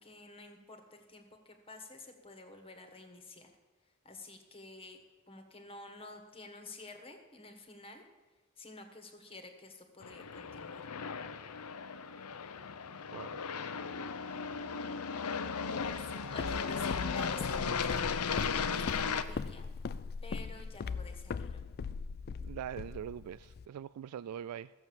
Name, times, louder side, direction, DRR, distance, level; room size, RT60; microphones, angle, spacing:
voice 1, 0.0-3.5 4.0-5.0 5.3-8.0 8.6-10.8 15.8-16.0 16.3-18.8 19.3-19.7 20.2-21.6, left 2 dB, 25° left, 5 dB, 1.5 m, -50 dB
Aircraft, 10.0-19.2, left 5 dB, 80° left, 0.7 m, -36 dB
voice 2, 13.1-13.8 22.4-24.7, right 9 dB, 80° right, 17 dB, 0.3 m, -43 dB
Walk footsteps, 15.8-23.7, left 5 dB, 45° left, 0.3 m, -40 dB
14.0 x 7.7 x 7.1 m, 1.3 s
head